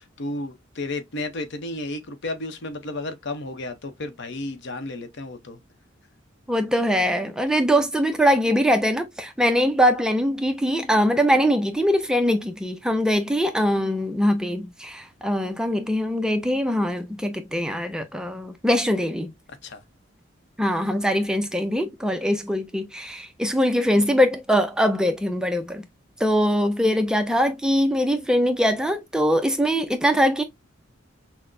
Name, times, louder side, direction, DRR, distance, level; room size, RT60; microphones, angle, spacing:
voice 1, 0.0-5.6 19.6-19.8, left 2 dB, 65° left, 0.7 m, -33 dB
voice 2, 6.5-19.3 20.6-25.9 26.2-30.4, equal, 5° right, 0.4 m, -22 dB
5.9 x 2.1 x 2.5 m
head